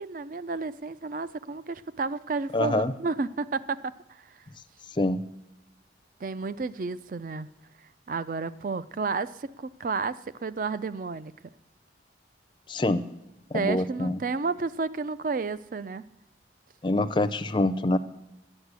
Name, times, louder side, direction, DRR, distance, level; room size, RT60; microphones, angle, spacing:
voice 1, 0.0-3.8 6.2-7.5 8.1-11.3 13.5-16.0, right 4 dB, 45° right, 16 dB, 0.4 m, -31 dB
voice 2, 2.5-2.9 5.0-5.2 12.7-13.0 13.5-14.2 16.8-18.0, left 2 dB, 25° left, 13 dB, 0.5 m, -25 dB
11.0 x 9.7 x 8.1 m, 0.91 s
head